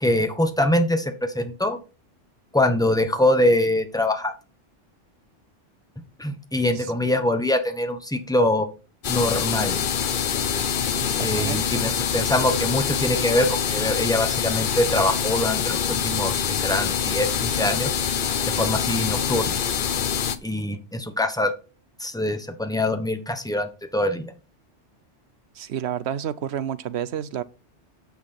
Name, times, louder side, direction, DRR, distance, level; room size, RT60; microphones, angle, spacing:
voice 1, 0.0-1.8 2.5-4.3 6.2-8.7 9.1-9.8 11.2-18.0 18.6-19.6 20.4-21.5 22.0-24.3, left 1 dB, 5° left, 0.9 m, -23 dB
sound 1, 9.0-20.4, left 7 dB, 50° left, 0.8 m, -25 dB
voice 2, 11.0-11.9 25.6-27.4, right 9 dB, 70° right, 0.9 m, -30 dB
9.4 x 6.0 x 4.3 m
omnidirectional pair, 1.2 m